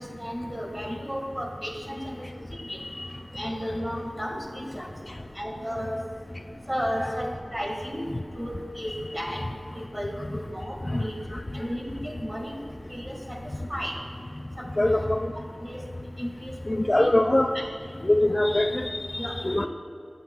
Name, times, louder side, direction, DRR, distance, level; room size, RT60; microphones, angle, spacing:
voice 1, 0.0-2.3 2.7-2.8 3.3-4.9 5.4-6.0 6.7-9.4 9.7-11.2 11.5-12.5 12.9-13.4 13.7-13.9 14.6-15.1 15.6-15.8 16.2-17.1 17.8-18.3 19.2-19.7, equal, 20° right, 0 dB, 1.8 m, -34 dB
voice 2, 14.8-15.3 16.7-17.5 18.0-19.1 19.4-19.7, left 1 dB, 35° left, 6 dB, 0.3 m, -22 dB
13.5 x 8.8 x 2.3 m, 2.4 s
wide cardioid pair, 55°, 0 cm